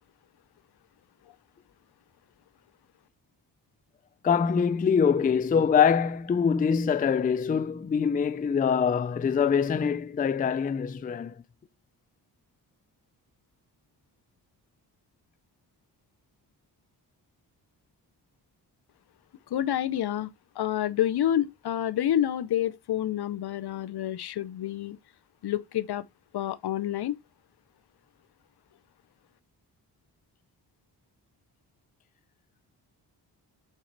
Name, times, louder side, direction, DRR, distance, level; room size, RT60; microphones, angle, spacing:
voice 1, 4.2-11.3, left 6 dB, 20° left, 0.4 m, -24 dB
voice 2, 19.5-20.3 20.6-25.0 25.4-26.0 26.3-27.2, left 11 dB, 65° left, 0.6 m, -28 dB
7.4 x 4.8 x 3.2 m
cardioid pair, 95°, 42 cm